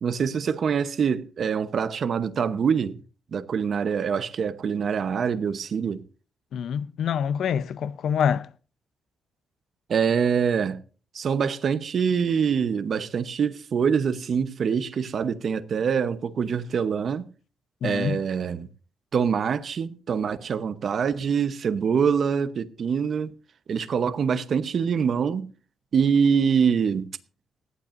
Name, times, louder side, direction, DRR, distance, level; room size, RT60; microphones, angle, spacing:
voice 1, 0.0-3.0 3.3-6.0 9.9-10.8 11.1-17.3 17.8-18.7 19.1-23.3 23.7-25.5 25.9-27.1, right 6 dB, 45° right, 0.9 m, -24 dB
voice 2, 6.5-8.5 17.8-18.2, left 8 dB, 65° left, 0.7 m, -26 dB
19.0 x 15.0 x 2.6 m
wide cardioid pair, 165°, 0 cm